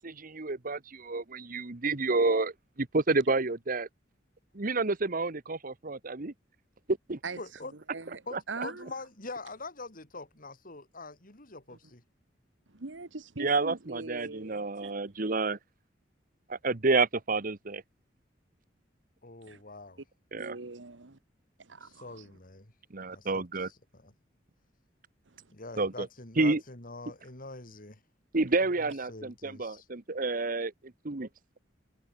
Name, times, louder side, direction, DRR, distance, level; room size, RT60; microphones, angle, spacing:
voice 1, 0.0-2.5 2.8-3.9 4.5-6.3 6.9-7.2 13.4-15.6 16.5-17.8 20.3-20.6 22.9-23.7 25.8-26.1 26.4-26.6 28.3-30.7 31.0-31.3, right 3 dB, 50° right, 1.2 m, -29 dB
voice 2, 7.4-7.7 8.3-12.0 19.2-20.0 21.8-22.7 23.1-24.1 25.5-28.0 28.6-29.9, left 3 dB, 50° left, 4.1 m, -44 dB
voice 3, 7.9-8.9 11.7-11.8 12.7-15.0 19.4-19.6 20.4-21.2 21.6-22.3 25.3-25.4, right 3 dB, 80° right, 1.4 m, -42 dB
head